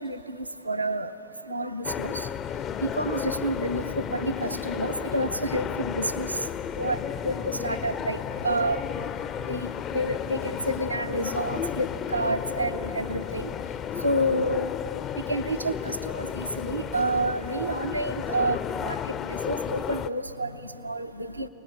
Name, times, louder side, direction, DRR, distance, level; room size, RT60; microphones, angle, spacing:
voice 1, 0.0-0.4 0.7-1.1 1.5-2.1 2.8-6.3 6.8-7.0 7.2-8.2 8.4-8.8 9.5-9.7 9.9-13.5 14.0-14.7 15.3-18.6 18.9-19.0 19.3-20.5 20.8-21.5, right 1 dB, 85° right, 8 dB, 0.7 m, -29 dB
sound 1, 1.8-20.1, left 8 dB, 30° left, 0.5 m, -33 dB
24.0 x 19.5 x 7.2 m, 2.7 s
figure-of-eight pair, 90°, 0 cm